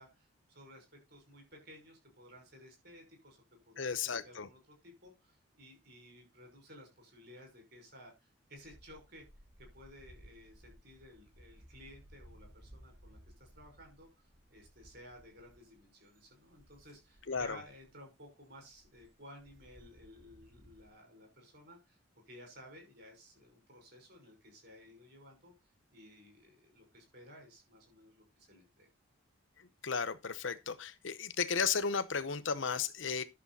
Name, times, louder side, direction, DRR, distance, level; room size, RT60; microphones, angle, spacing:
voice 1, 0.0-9.2 9.6-14.2 14.5-22.0 22.3-25.5 25.9-28.9, equal, 50° right, 5.7 m, -56 dB
voice 2, 3.8-4.5 17.3-17.6 29.8-33.2, left 5 dB, 65° left, 0.9 m, -34 dB
sound 1, 8.5-20.9, equal, 65° right, 3.4 m, -60 dB
11.0 x 6.7 x 4.1 m
head